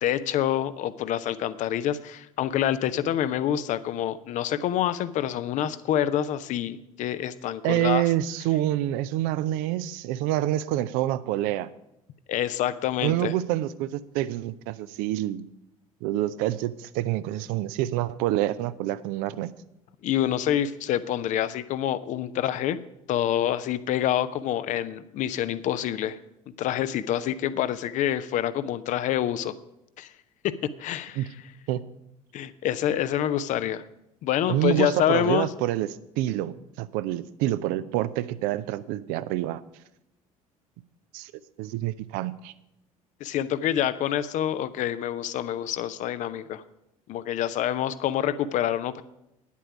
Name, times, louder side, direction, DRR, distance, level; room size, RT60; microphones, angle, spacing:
voice 1, 0.0-8.0 12.3-13.3 20.0-22.8 23.1-26.2 26.6-29.5 30.0-30.1 30.4-31.2 32.3-33.8 34.2-35.5 43.2-46.6 47.1-49.0, left 11 dB, 45° left, 15 dB, 0.6 m, -27 dB
voice 2, 7.6-11.7 13.0-15.4 16.0-19.5 31.2-31.3 31.7-31.8 34.5-35.9 36.2-39.6 41.1-41.3 41.6-42.5, right 14 dB, 55° right, 16 dB, 0.5 m, -27 dB
9.9 x 8.4 x 5.8 m, 0.85 s
figure-of-eight pair, 60°, 18 cm